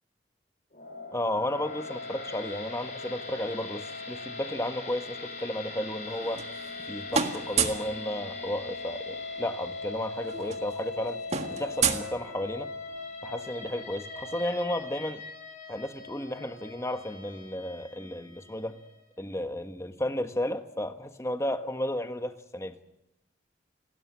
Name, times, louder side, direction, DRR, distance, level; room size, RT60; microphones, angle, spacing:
sound 1, 0.7-19.0, left 3 dB, 45° left, 5.8 m, -40 dB
voice 1, 1.1-6.4 6.9-11.2 11.5-12.7 13.2-15.2 15.7-18.8 19.2-22.8, left 1 dB, 15° left, 8 dB, 1.3 m, -33 dB
sound 2, 6.1-6.8 7.1-7.9 9.3-9.4 9.6-9.8 10.1-12.8, right 6 dB, 40° right, 1.8 m, -30 dB
28.0 x 13.5 x 9.5 m, 0.91 s
head